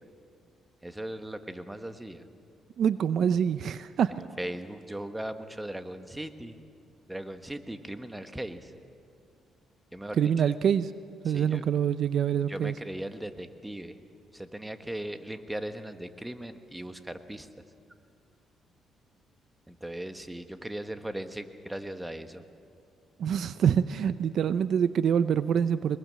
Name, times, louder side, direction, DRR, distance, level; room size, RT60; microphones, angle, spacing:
voice 1, 0.8-2.2 4.4-6.6 7.1-8.7 9.9-10.5 11.2-11.6 12.5-14.0 14.3-17.5 19.7-22.4, right 1 dB, 10° right, 8 dB, 1.3 m, -38 dB
voice 2, 2.8-4.2 10.2-10.9 11.2-12.7 23.2-26.0, right 8 dB, 65° right, 13 dB, 0.6 m, -25 dB
23.5 x 21.5 x 7.6 m, 2.4 s
cardioid pair, 90°, 0 cm